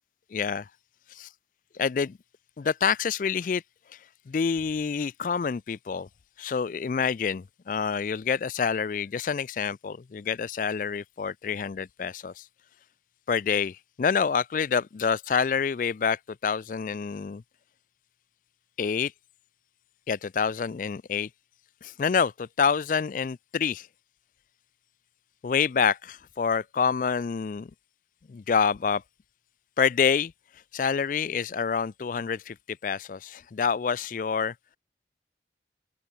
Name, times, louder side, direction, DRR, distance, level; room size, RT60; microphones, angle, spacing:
voice 1, 0.3-0.7 1.7-2.2 2.6-3.6 4.3-6.1 6.4-12.4 13.3-17.4 18.8-19.1 20.1-21.3 21.8-23.9 25.4-27.7 28.3-29.0 29.8-30.3 30.7-34.5, left 6 dB, 50° left, 0.4 m, -27 dB
open air
head